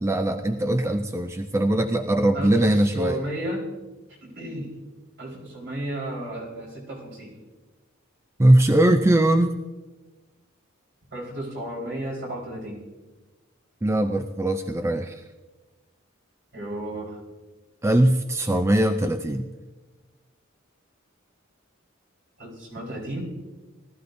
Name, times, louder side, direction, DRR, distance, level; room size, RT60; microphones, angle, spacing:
voice 1, 0.0-3.2 8.4-9.6 13.8-15.1 17.8-19.5, right 1 dB, 15° right, 8 dB, 0.4 m, -21 dB
voice 2, 2.3-3.6 4.2-4.7 5.2-7.3 11.1-12.8 16.5-17.2 22.4-23.2, right 1 dB, 60° right, -3 dB, 4.3 m, -33 dB
18.5 x 13.0 x 2.6 m, 1.2 s
head